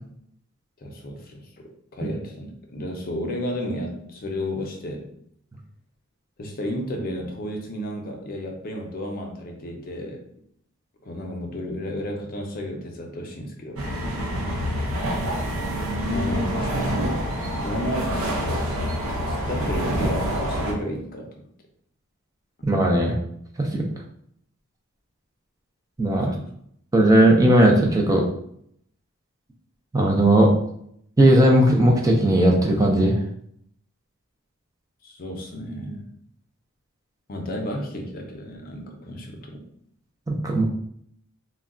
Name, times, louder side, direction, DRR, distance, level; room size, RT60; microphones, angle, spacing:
voice 1, 0.8-1.5 1.9-5.1 6.4-10.2 11.0-14.3 16.1-17.2 17.5-18.5 19.3-21.3 26.3-26.5 35.0-36.0 37.3-39.6, left 1 dB, 45° left, 2 dB, 0.5 m, -32 dB
sound 1, 13.8-20.7, equal, 85° right, 0.7 m, -26 dB
voice 2, 22.6-23.2 23.6-23.9 26.0-26.4 26.9-28.2 29.9-30.5 31.2-33.2 40.3-40.6, right 1 dB, 15° right, 0 dB, 0.3 m, -17 dB
2.3 x 2.1 x 3.6 m, 0.69 s
head